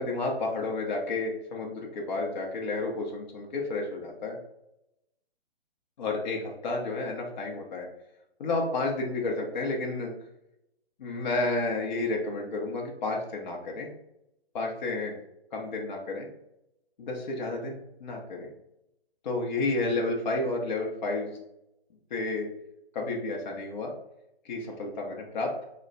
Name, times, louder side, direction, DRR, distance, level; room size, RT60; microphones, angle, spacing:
voice 1, 0.0-4.4 6.0-7.9 8.4-10.1 11.0-13.9 14.5-15.1 15.5-16.3 17.0-18.5 19.2-21.3 22.1-22.5 22.9-23.9 24.4-25.5, left 2 dB, 45° left, 0 dB, 1.0 m, -31 dB
4.2 x 2.2 x 3.9 m, 0.83 s
hypercardioid pair, 145°, 31 cm